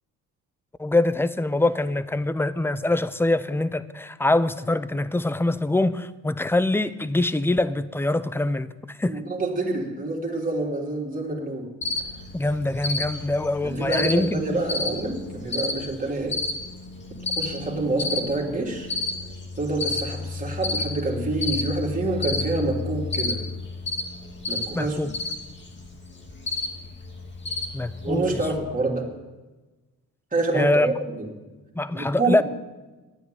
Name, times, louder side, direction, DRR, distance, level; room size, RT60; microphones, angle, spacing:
voice 1, 0.8-9.2 12.3-14.6 24.7-25.1 27.7-28.4 30.5-30.9 31.8-32.4, left 2 dB, 5° left, 14 dB, 0.6 m, -24 dB
voice 2, 9.1-11.7 13.6-16.4 17.3-18.9 19.6-23.4 24.5-25.0 28.0-29.1 30.3-31.3 31.9-32.4, right 2 dB, 25° right, -1 dB, 3.3 m, -27 dB
Cricket, 11.8-28.6, left 3 dB, 35° left, 2.3 m, -31 dB
12.0 x 9.4 x 9.3 m, 1.2 s
cardioid pair, 100°, 33 cm